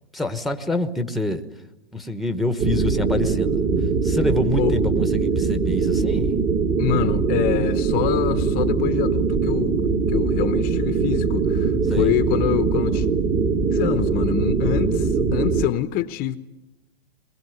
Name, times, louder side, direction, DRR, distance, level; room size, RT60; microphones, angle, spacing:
voice 1, 0.1-1.4 1.9-3.6 4.0-6.4 11.9-12.2, left 2 dB, ahead, 1.1 m, -26 dB
sound 1, 2.6-15.7, right 5 dB, 20° right, 1.5 m, -22 dB
voice 2, 6.8-9.7 10.1-13.1 13.7-16.4, left 12 dB, 30° left, 1.0 m, -25 dB
22.5 x 22.0 x 9.5 m
hypercardioid pair, 140°, 30 cm